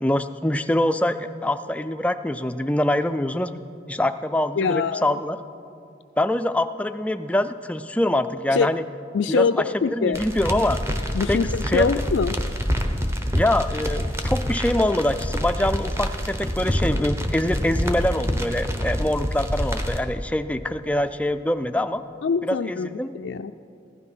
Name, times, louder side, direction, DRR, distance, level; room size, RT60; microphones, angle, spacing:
voice 1, 0.0-3.6 3.9-5.4 6.2-8.8 9.3-10.8 11.3-11.9 13.4-22.0 22.4-23.1, left 1 dB, 5° left, 10 dB, 0.3 m, -24 dB
voice 2, 4.6-5.2 8.5-8.7 9.1-10.2 11.1-12.4 22.2-23.7, left 5 dB, 85° left, 7 dB, 0.4 m, -24 dB
sound 1, 10.1-20.0, equal, 15° right, 0.9 m, -26 dB
15.5 x 12.0 x 5.6 m, 2.6 s
head